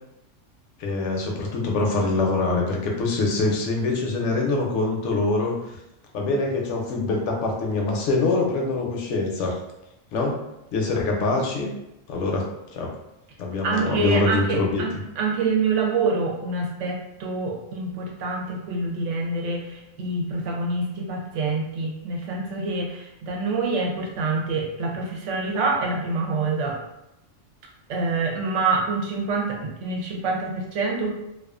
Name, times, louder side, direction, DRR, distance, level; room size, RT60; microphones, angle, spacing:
voice 1, 0.8-5.5 6.1-9.5 10.1-10.4 10.7-11.7 12.1-12.9 13.4-14.8, left 3 dB, 70° left, 0 dB, 0.9 m, -24 dB
voice 2, 13.6-14.9 15.2-26.8 27.9-31.1, right 3 dB, 70° right, 0 dB, 0.9 m, -26 dB
2.3 x 2.3 x 2.3 m, 0.89 s
omnidirectional pair, 1.3 m